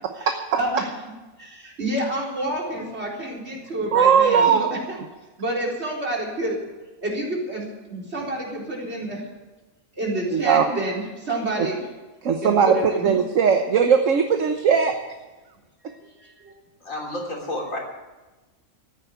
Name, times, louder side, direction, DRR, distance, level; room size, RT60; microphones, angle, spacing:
voice 1, 0.0-0.3 3.9-4.7 10.3-10.8 12.2-12.8 13.0-14.9 15.8-15.9, right 7 dB, 65° right, 5 dB, 1.4 m, -19 dB
voice 2, 0.5-0.9 1.4-5.0 5.4-6.6 7.0-9.2 10.0-11.8 12.4-13.1 16.2-16.5, right 1 dB, 50° right, -3 dB, 4.4 m, -28 dB
voice 3, 16.8-17.8, left 1 dB, 70° left, 0 dB, 3.9 m, -30 dB
14.0 x 9.7 x 9.3 m, 1.2 s
omnidirectional pair, 1.4 m